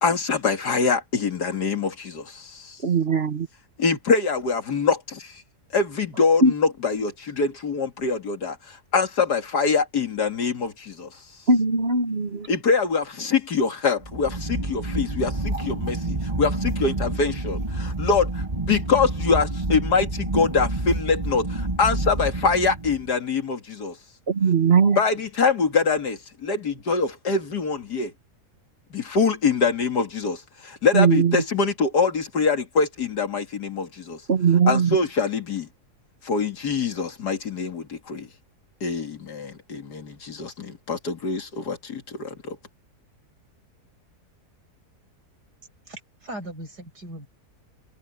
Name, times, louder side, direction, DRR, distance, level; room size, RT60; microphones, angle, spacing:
voice 1, 0.0-2.8 3.8-5.4 5.7-11.2 12.5-24.0 25.0-28.1 28.9-34.2 34.7-35.7 36.2-38.3 38.8-42.6, left 4 dB, 85° left, 2.8 m, -24 dB
voice 2, 2.8-3.5 6.4-6.5 11.5-12.5 24.3-25.0 30.9-31.4 34.3-35.0, right 5 dB, 40° right, 1.5 m, -19 dB
sound 1, 14.0-23.1, right 2 dB, 25° right, 1.7 m, -28 dB
voice 3, 45.9-47.3, right 1 dB, 90° right, 8.2 m, -38 dB
omnidirectional pair, 1.7 m